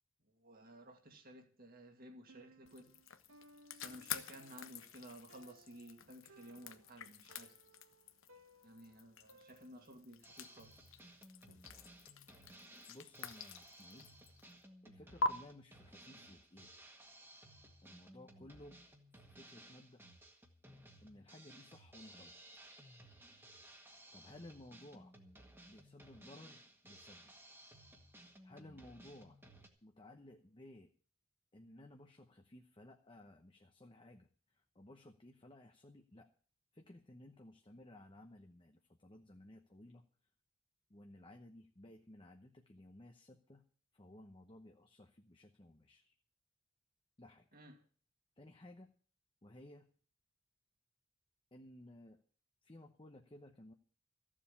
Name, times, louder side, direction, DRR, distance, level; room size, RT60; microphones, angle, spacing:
voice 1, 0.3-3.0 3.7-7.5 8.6-10.9 47.5-47.8, right 1 dB, 45° right, 2.3 m, -55 dB
Piano, 2.3-10.1, right 1 dB, 85° right, 1.8 m, -64 dB
sound 1, 2.6-14.5 15.2-15.3, left 3 dB, 70° left, 1.1 m, -46 dB
Drum kit, 10.2-29.7, right 1 dB, 10° right, 1.7 m, -59 dB
voice 2, 12.9-14.1 14.8-16.9 17.8-18.8 19.1-20.0 21.0-22.3 24.1-25.1 25.7-27.3 28.4-29.4 29.8-30.9 31.5-36.3 36.7-40.0 40.9-43.6 43.9-46.1 47.2-47.5 48.4-48.9 49.4-49.9 51.5-52.2 52.6-53.7, left 1 dB, 25° left, 0.9 m, -57 dB
14.5 x 7.4 x 8.6 m
head